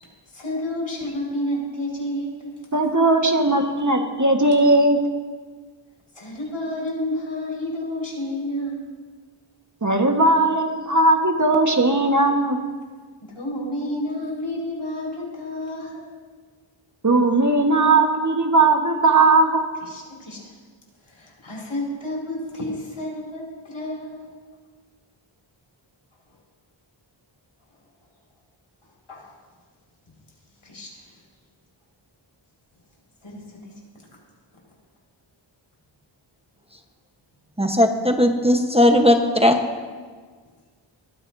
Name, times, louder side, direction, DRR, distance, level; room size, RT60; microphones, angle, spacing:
voice 1, 0.3-2.6 6.1-8.8 13.3-16.0 19.9-20.4 21.0-24.3 29.1-29.3 30.6-31.0 33.2-33.6, left 1 dB, 75° left, -3 dB, 5.1 m, -30 dB
voice 2, 2.7-5.0 9.8-12.6 17.0-19.6, right 2 dB, 35° right, 4 dB, 1.5 m, -18 dB
voice 3, 37.6-39.6, left 1 dB, 10° right, 3 dB, 1.1 m, -17 dB
21.0 x 14.5 x 2.7 m, 1.5 s
wide cardioid pair, 55°, 48 cm